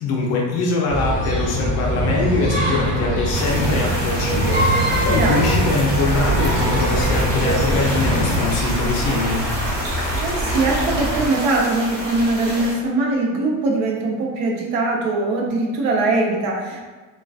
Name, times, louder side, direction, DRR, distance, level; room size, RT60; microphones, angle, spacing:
voice 1, 0.0-9.4, left 3 dB, 40° left, -1 dB, 0.4 m, -23 dB
sound 1, 0.9-8.4, right 1 dB, 20° right, 1.0 m, -22 dB
sound 2, 3.3-12.7, equal, 55° right, 0.9 m, -29 dB
voice 2, 5.2-5.5 10.2-16.8, right 2 dB, 80° right, -2 dB, 0.7 m, -21 dB
sound 3, 6.1-11.3, right 1 dB, 10° left, 0.8 m, -26 dB
2.3 x 2.3 x 2.3 m, 1.3 s
cardioid pair, 155°, 39 cm